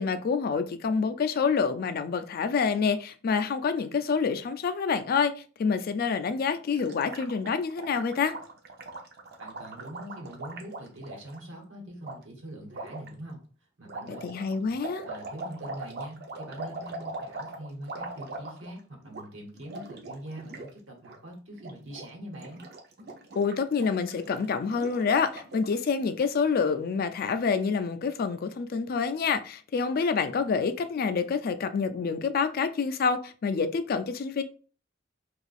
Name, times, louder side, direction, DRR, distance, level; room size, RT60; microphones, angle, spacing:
voice 1, 0.0-5.3 5.6-8.3 14.1-15.0 23.4-34.4, left 5 dB, 50° left, 0.4 m, -27 dB
Gurgling, 6.8-11.4 12.0-12.2 12.7-13.1 13.9-18.8 19.1-19.3 19.5-20.7 21.0-21.2 21.5-22.1 22.3-25.8, right 2 dB, 55° right, 0.6 m, -41 dB
voice 2, 9.4-13.4 13.8-14.3 14.6-14.7 15.0-22.6, right 1 dB, 80° right, 1.1 m, -43 dB
2.7 x 2.4 x 4.0 m
head